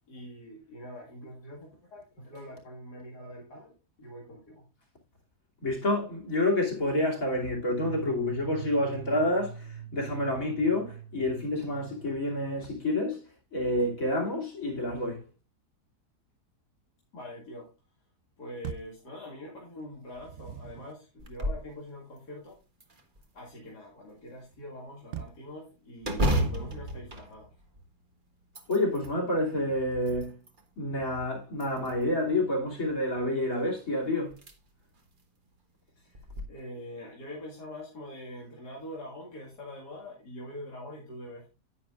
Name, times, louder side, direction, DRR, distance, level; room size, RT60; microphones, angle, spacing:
voice 1, 0.1-3.7 4.0-4.7 17.1-17.7 18.4-22.6 23.3-27.5 36.0-41.5, left 1 dB, 85° left, 2.6 m, -44 dB
voice 2, 5.6-13.2 13.5-15.3 28.7-30.4 30.8-34.4, left 1 dB, 55° left, 3.2 m, -28 dB
sound 1, 7.7-12.9, right 4 dB, 85° right, 2.5 m, -44 dB
sound 2, 18.6-19.0 19.9-21.0 25.1-25.5 26.1-26.8, right 8 dB, 65° right, 0.9 m, -42 dB
sound 3, 21.2-21.7 22.2-22.3 22.8-23.6 26.0-28.0 28.4-29.2 29.8-30.6 31.5-32.2 33.7-33.8 34.3-34.5 35.0-35.1 36.2-36.4, equal, 35° right, 1.4 m, -32 dB
10.0 x 9.6 x 2.5 m
omnidirectional pair, 1.7 m